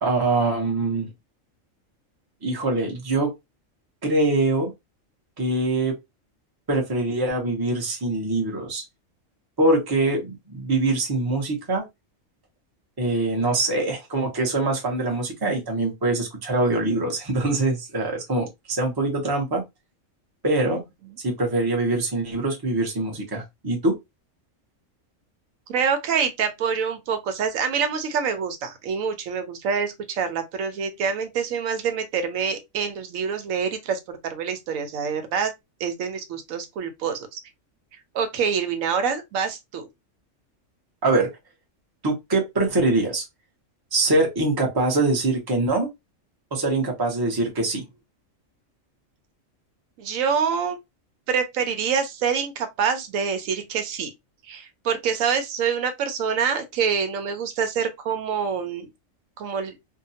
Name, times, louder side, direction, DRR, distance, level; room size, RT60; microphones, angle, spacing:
voice 1, 0.0-1.1 2.4-3.3 4.0-4.7 5.4-5.9 6.7-8.8 9.6-11.8 13.0-19.6 20.4-20.8 21.2-24.0 41.0-41.3 42.0-43.2 43.9-45.9 46.5-47.8, right 2 dB, 25° right, 0.6 m, -23 dB
voice 2, 25.7-35.5 35.8-37.4 38.1-39.9 50.0-50.8 51.3-54.1 54.5-58.9 59.4-59.8, right 6 dB, 85° right, 1.0 m, -26 dB
2.7 x 2.2 x 2.6 m
omnidirectional pair, 1.4 m